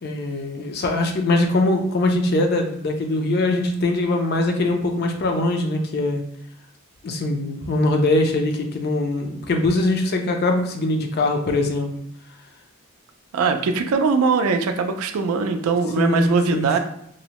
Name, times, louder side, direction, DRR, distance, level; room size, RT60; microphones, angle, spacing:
voice 1, 0.0-6.2 7.0-11.9 16.0-16.8, left 2 dB, 50° left, 4 dB, 0.4 m, -22 dB
voice 2, 13.3-16.8, right 4 dB, 85° right, 7 dB, 0.4 m, -21 dB
2.6 x 2.0 x 2.9 m, 0.72 s
head